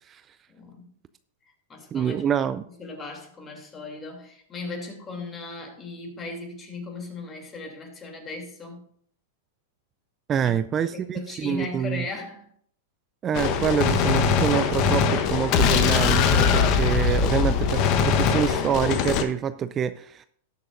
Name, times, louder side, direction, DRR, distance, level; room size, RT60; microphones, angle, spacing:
voice 1, 0.5-0.9 1.4-2.2 2.7-8.8 10.4-10.5 10.8-12.5, left 3 dB, 25° left, 2 dB, 3.0 m, -37 dB
voice 2, 1.9-2.6 10.3-12.0 13.2-20.2, right 8 dB, 25° right, 13 dB, 0.4 m, -26 dB
Gunshot gunfire, 13.3-19.2, left 6 dB, 45° left, 1.1 m, -21 dB
18.0 x 6.6 x 2.6 m, 0.62 s
hypercardioid pair, 115°, 0 cm